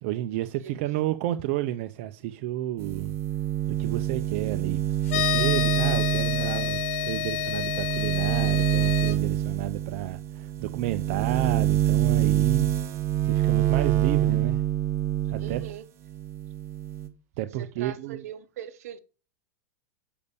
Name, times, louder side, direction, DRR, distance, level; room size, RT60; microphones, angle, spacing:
voice 1, 0.0-3.1 3.8-12.7 13.2-14.6 15.3-15.6 17.4-18.2, right 14 dB, 55° right, 0.5 m, -31 dB
sound 1, 2.8-15.7 16.1-17.1, right 12 dB, 30° right, 1.2 m, -26 dB
sound 2, 5.1-9.2, left 12 dB, 65° left, 1.6 m, -29 dB
voice 2, 15.4-15.9 17.6-19.0, right 10 dB, 75° right, 1.0 m, -41 dB
6.9 x 5.3 x 6.9 m
supercardioid pair, 135°, 8 cm